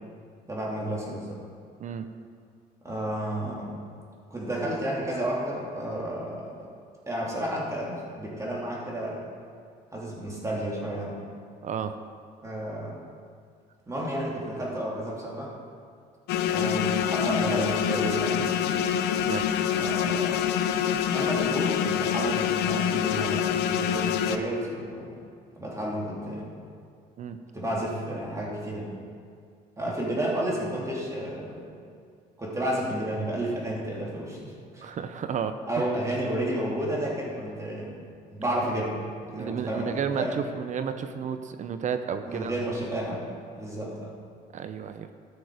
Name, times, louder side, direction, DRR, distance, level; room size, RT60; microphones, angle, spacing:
voice 1, 0.5-1.4 2.8-3.8 4.3-6.5 7.1-9.2 9.9-11.2 12.4-13.0 13.9-15.5 16.5-18.5 19.7-20.5 21.1-25.2 25.6-26.5 27.5-28.9 29.8-31.7 32.4-34.9 35.7-38.0 38.3-39.0 39.3-40.3 42.3-43.3 43.5-44.1, right 1 dB, 20° right, -4 dB, 3.0 m, -31 dB
voice 2, 11.6-11.9 19.3-19.5 27.2-27.4 34.8-35.6 39.3-42.5 44.5-45.1, right 7 dB, 45° right, 9 dB, 0.6 m, -32 dB
sound 1, 16.3-24.4, left 9 dB, 85° left, 0.6 m, -26 dB
14.0 x 6.3 x 5.0 m, 2.3 s
cardioid pair, 110°, 17 cm